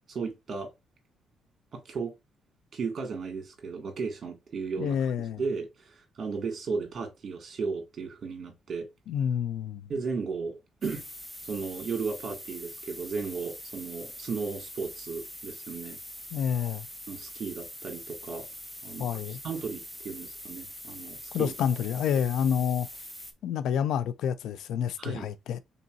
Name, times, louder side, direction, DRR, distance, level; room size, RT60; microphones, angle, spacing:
voice 1, 0.1-0.7 1.7-2.1 2.7-5.0 5.4-8.9 9.9-11.1 11.5-16.0 17.1-18.5 18.8-19.1 19.4-21.5 22.1-22.2 25.0-25.3, right 5 dB, 50° right, 1.8 m, -35 dB
voice 2, 4.8-5.4 9.1-9.9 16.3-16.9 19.0-19.4 21.3-22.9 23.4-25.6, left 8 dB, 80° left, 0.4 m, -28 dB
sound 1, 10.8-23.3, equal, 5° left, 0.7 m, -43 dB
4.0 x 3.9 x 2.4 m
cardioid pair, 90°, 0 cm